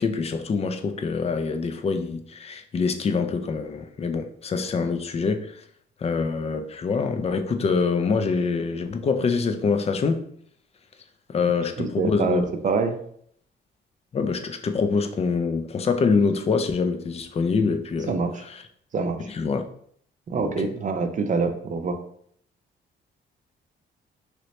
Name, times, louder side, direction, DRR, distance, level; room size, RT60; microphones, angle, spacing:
voice 1, 0.0-5.6 6.0-10.3 11.3-12.4 14.1-18.6 19.2-19.6 20.4-20.7, left 5 dB, 30° left, 0.4 m, -25 dB
voice 2, 11.8-13.0 18.1-18.3 18.9-19.3 20.3-22.0, right 4 dB, 40° right, 0.5 m, -25 dB
3.0 x 2.9 x 3.1 m
cardioid pair, 90°, 20 cm